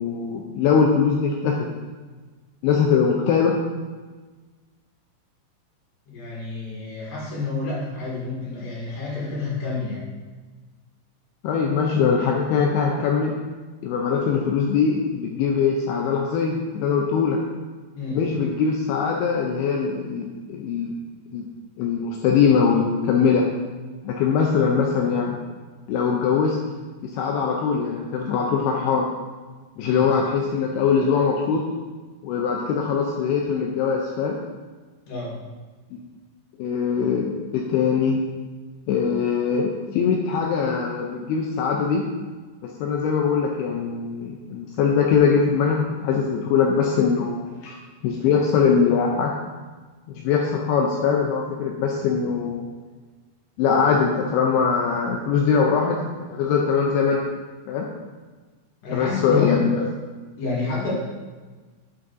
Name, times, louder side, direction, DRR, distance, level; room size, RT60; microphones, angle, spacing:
voice 1, 0.0-1.7 2.6-3.5 11.4-13.4 13.8-17.4 18.1-20.9 21.3-21.5 21.8-23.4 24.0-25.4 25.9-26.6 27.0-29.1 29.8-31.6 32.2-34.4 35.9-36.0 36.6-38.2 38.9-42.0 42.6-47.8 48.0-49.3 50.1-52.6 53.6-57.2 57.7-57.9 58.9-59.8, left 6 dB, 90° left, 0 dB, 2.3 m, -22 dB
voice 2, 6.1-10.0 17.9-18.2 29.8-30.1 35.1-35.3 58.8-59.5 60.4-60.9, left 4 dB, 65° left, -6 dB, 4.1 m, -29 dB
8.5 x 7.4 x 2.6 m, 1.3 s
omnidirectional pair, 5.2 m